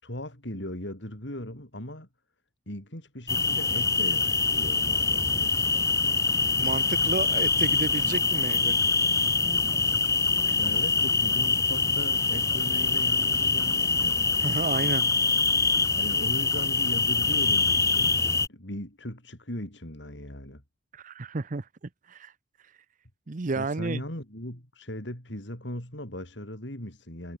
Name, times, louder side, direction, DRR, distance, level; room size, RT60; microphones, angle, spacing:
voice 1, 0.0-2.1 2.7-5.9 10.6-14.2 15.9-20.6 23.5-27.4, left 1 dB, 70° left, 6.5 m, -38 dB
sound 1, 3.3-18.5, left 4 dB, 15° left, 1.6 m, -24 dB
voice 2, 6.6-8.8 14.4-15.0 20.9-21.7 22.1-22.3 23.3-24.0, right 3 dB, 45° right, 0.7 m, -31 dB
head